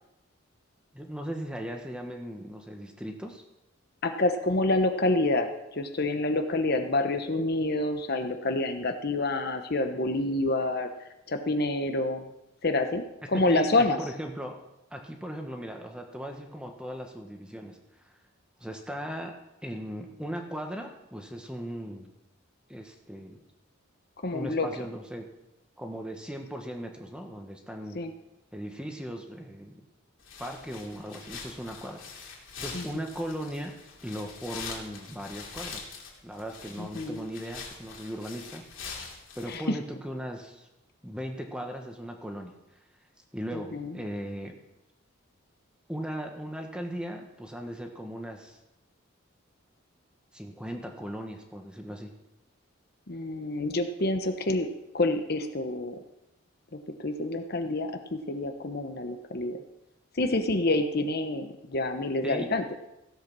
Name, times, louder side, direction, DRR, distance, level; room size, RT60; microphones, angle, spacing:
voice 1, 0.9-3.4 13.3-14.6 14.9-18.1 18.6-19.4 19.6-22.1 22.7-23.4 24.3-25.2 25.8-28.0 28.5-29.8 30.4-33.7 34.0-35.9 36.2-39.1 39.3-40.7 41.0-42.5 43.3-44.5 45.9-48.6 50.3-52.1 62.2-62.5, equal, 5° right, 3 dB, 1.3 m, -38 dB
voice 2, 4.0-10.9 11.3-12.3 12.6-13.0 13.3-14.0 24.2-24.7 27.9-28.1 32.7-33.0 36.8-37.2 39.5-39.8 43.5-44.0 53.1-54.7 54.9-56.0 56.7-59.6 60.1-62.7, left 2 dB, 50° left, 6 dB, 1.0 m, -28 dB
sound 1, 30.2-39.6, left 5 dB, 70° left, 2.7 m, -43 dB
16.0 x 7.8 x 6.1 m, 0.92 s
head